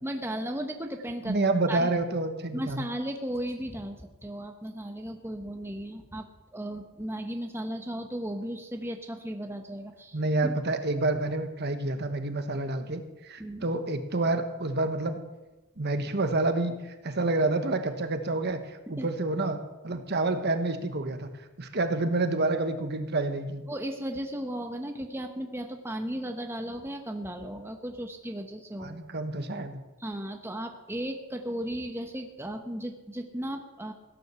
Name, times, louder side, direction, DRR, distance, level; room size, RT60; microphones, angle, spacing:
voice 1, 0.0-1.4 1.7-1.9 2.5-6.3 6.5-10.5 13.4-13.6 18.9-19.1 23.7-29.0 30.0-33.9, right 1 dB, 10° right, 4 dB, 1.0 m, -35 dB
voice 2, 1.2-2.9 10.1-15.2 15.8-21.3 21.6-23.6 28.8-29.8, right 2 dB, 50° right, 8 dB, 1.2 m, -28 dB
16.5 x 9.8 x 6.9 m, 1.1 s
head